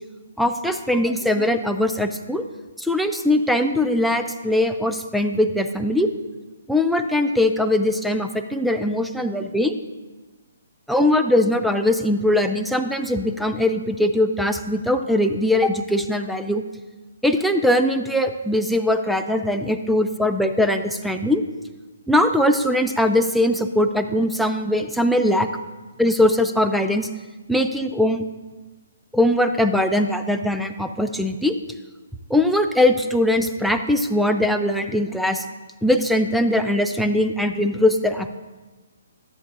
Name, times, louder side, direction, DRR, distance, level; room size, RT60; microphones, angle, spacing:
voice 1, 0.4-2.4 2.8-6.1 6.7-9.7 10.9-16.6 17.2-21.4 22.1-25.5 26.0-27.1 27.5-28.2 29.1-31.5 32.3-35.4 35.8-38.3, left 1 dB, ahead, 6 dB, 0.4 m, -21 dB
13.5 x 8.4 x 2.6 m, 1.2 s
figure-of-eight pair, 135°, 0 cm